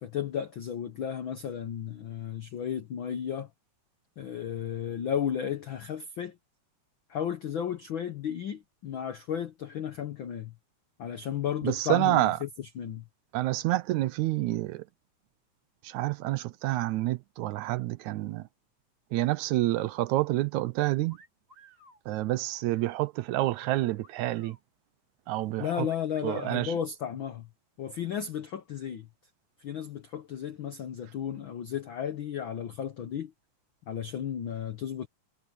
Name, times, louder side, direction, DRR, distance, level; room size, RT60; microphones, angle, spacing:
voice 1, 0.0-3.5 4.2-6.4 7.1-10.5 11.0-13.0 25.6-27.5 27.8-29.1 29.6-33.3 33.9-35.1, left 9 dB, 75° left, 1.1 m, -34 dB
voice 2, 11.6-12.4 13.3-14.9 15.8-18.4 19.1-21.2 22.1-24.6 25.3-25.9 26.2-26.7, right 17 dB, 80° right, 2.0 m, -28 dB
sound 1, 21.1-22.0 23.6-24.6 25.9-26.6, right 2 dB, 25° right, 7.6 m, -56 dB
omnidirectional pair, 3.5 m